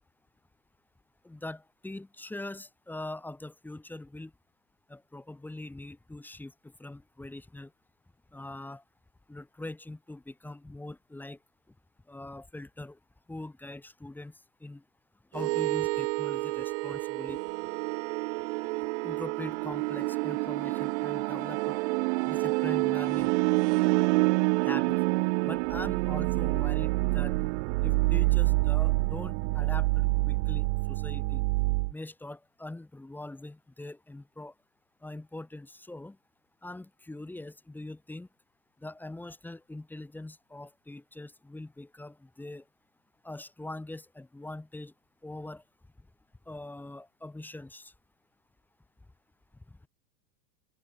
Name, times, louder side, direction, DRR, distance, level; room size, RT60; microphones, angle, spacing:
voice 1, 1.2-4.3 4.9-7.7 8.3-8.8 9.3-11.4 11.7-11.8 12.0-13.0 13.3-14.8 15.3-17.4 19.0-21.8 22.2-23.3 24.6-25.0 25.4-27.4 27.8-31.4 31.9-34.5 35.0-36.2 36.6-38.3 38.8-42.7 43.2-44.9 45.2-45.6 46.0-46.1 46.4-47.9 49.7-49.8, left 2 dB, 5° left, 1.3 m, -42 dB
sound 1, 15.3-31.9, right 25 dB, 45° right, 0.7 m, -27 dB
open air
supercardioid pair, 145°, 49 cm